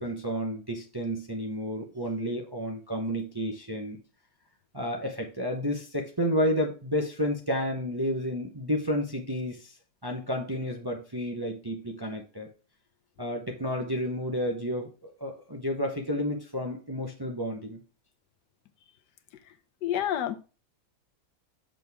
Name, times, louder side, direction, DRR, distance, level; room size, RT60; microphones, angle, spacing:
voice 1, 0.0-4.0 4.7-9.7 10.0-12.5 13.2-17.8, equal, 20° right, 2 dB, 0.6 m, -31 dB
voice 2, 19.8-20.3, left 11 dB, 85° left, 8 dB, 1.4 m, -28 dB
6.4 x 6.3 x 3.5 m, 0.34 s
omnidirectional pair, 1.8 m